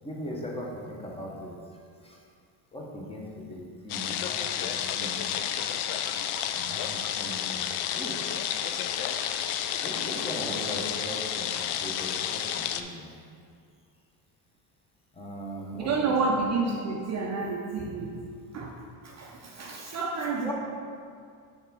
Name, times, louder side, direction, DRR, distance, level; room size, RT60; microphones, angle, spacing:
voice 1, 0.0-1.5 2.0-2.2 2.7-3.2 3.5-5.2 6.4-7.6 7.9-8.2 9.8-11.5 11.8-13.1 15.2-16.2 20.4-20.5, equal, 10° left, -2 dB, 0.8 m, -39 dB
sound 1, 3.9-12.8, left 9 dB, 75° left, 0.5 m, -31 dB
voice 2, 15.8-18.2 18.5-18.7 19.0-20.5, right 4 dB, 35° right, 0 dB, 0.4 m, -29 dB
6.5 x 3.5 x 5.4 m, 2.3 s
cardioid pair, 150°, 49 cm